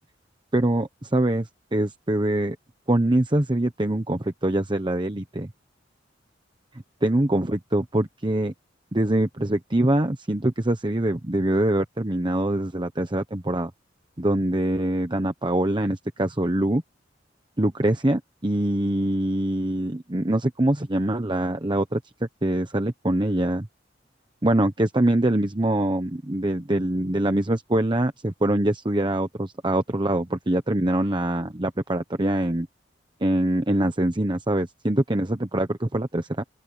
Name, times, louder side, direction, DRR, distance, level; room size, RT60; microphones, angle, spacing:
voice 1, 0.5-2.6 2.9-5.5 7.0-8.5 8.9-13.7 14.2-16.8 17.6-22.0 22.4-23.7 24.4-32.7 33.2-36.4, right 1 dB, 25° right, 1.1 m, -24 dB
open air
head